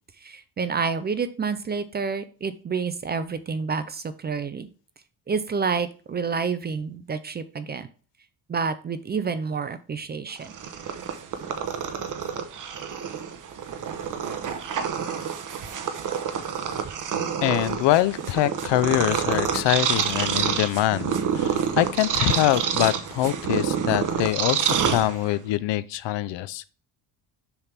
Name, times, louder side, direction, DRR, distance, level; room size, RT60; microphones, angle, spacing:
voice 1, 0.2-4.7 5.3-7.9 8.5-10.5, right 5 dB, 25° right, 0.4 m, -29 dB
Purr, 10.4-25.5, right 7 dB, 45° right, 0.9 m, -27 dB
voice 2, 17.4-26.6, left 14 dB, 80° left, 0.6 m, -24 dB
7.0 x 3.4 x 5.8 m
cardioid pair, 160°, 43 cm